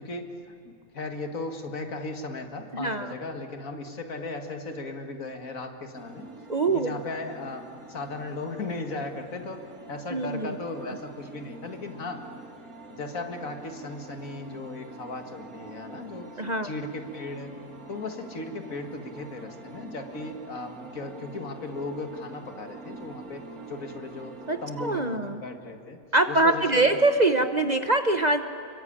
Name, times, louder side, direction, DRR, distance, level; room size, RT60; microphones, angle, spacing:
voice 1, 0.0-6.3 6.7-12.3 12.9-16.3 16.6-17.5 17.9-24.3 24.6-26.0 26.3-27.0, left 2 dB, 70° left, 5 dB, 2.4 m, -36 dB
voice 2, 2.7-3.1 6.5-6.9 10.1-10.6 16.4-16.7 24.5-25.4 26.1-28.4, right 2 dB, 35° right, 8 dB, 0.9 m, -24 dB
sound 1, 5.9-25.0, right 3 dB, 85° right, 2.6 m, -45 dB
26.0 x 23.0 x 8.9 m, 2.5 s
omnidirectional pair, 1.5 m